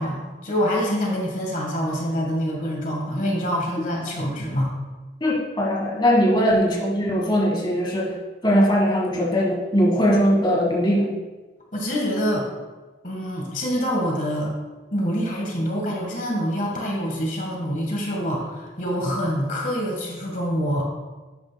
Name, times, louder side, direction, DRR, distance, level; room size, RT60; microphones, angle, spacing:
voice 1, 0.0-4.7 11.7-12.5 13.0-14.5 14.9-20.8, equal, 45° left, 0 dB, 1.5 m, -26 dB
voice 2, 5.2-8.2 8.4-11.1, equal, 25° left, -2 dB, 1.5 m, -20 dB
11.5 x 9.1 x 2.2 m, 1.2 s
head